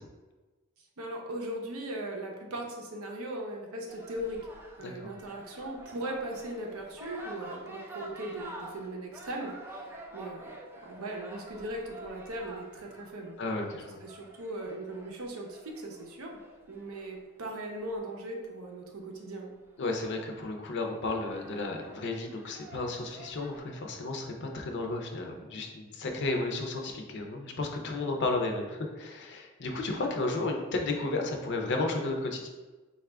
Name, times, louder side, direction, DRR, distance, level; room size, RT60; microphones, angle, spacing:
voice 1, 1.0-4.4 4.8-10.5 10.8-13.4 14.0-16.4 16.7-19.5, right 1 dB, 80° right, 1 dB, 0.7 m, -39 dB
sound 1, 3.9-18.1 19.6-19.7 20.1-20.6 21.1-23.6, right 1 dB, 10° right, 0.4 m, -48 dB
voice 2, 13.4-14.0 19.8-32.5, left 2 dB, 55° left, 3 dB, 0.5 m, -33 dB
4.0 x 2.4 x 3.3 m, 1.2 s
head